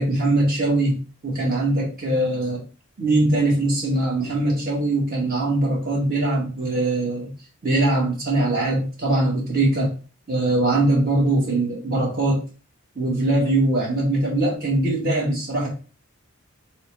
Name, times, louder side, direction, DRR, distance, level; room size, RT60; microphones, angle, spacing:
voice 1, 0.0-2.6 3.0-7.3 7.6-9.9 10.3-12.4 12.9-15.7, right 2 dB, 45° right, -2 dB, 1.5 m, -21 dB
3.0 x 3.0 x 4.6 m, 0.36 s
head